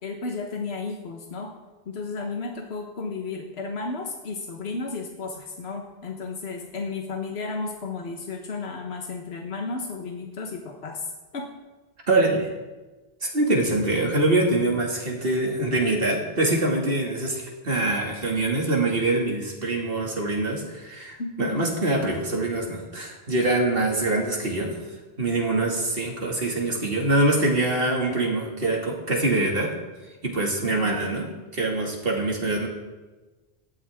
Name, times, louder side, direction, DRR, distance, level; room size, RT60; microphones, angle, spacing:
voice 1, 0.0-1.5 1.9-11.0 11.3-11.5 21.2-21.7 30.7-31.1, left 4 dB, 80° left, 2 dB, 1.5 m, -33 dB
voice 2, 12.1-12.5 13.2-24.8 25.2-29.7 30.2-31.3 31.5-32.7, right 2 dB, 60° right, -1 dB, 2.6 m, -24 dB
17.0 x 13.0 x 3.7 m, 1.2 s
omnidirectional pair, 1.1 m